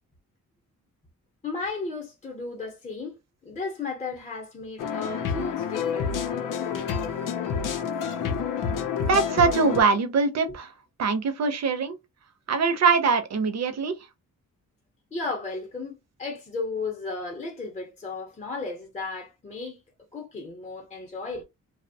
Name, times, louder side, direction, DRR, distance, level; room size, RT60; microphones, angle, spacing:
voice 1, 1.4-3.1 3.4-6.1 15.1-19.8 20.1-21.4, left 3 dB, 20° left, 0.7 m, -34 dB
sound 1, 4.8-9.8, left 6 dB, 75° left, 0.5 m, -28 dB
voice 2, 9.0-10.7 11.0-12.0 12.5-14.0, right 4 dB, 55° right, 0.5 m, -23 dB
2.8 x 2.0 x 2.6 m
wide cardioid pair, 165°, 32 cm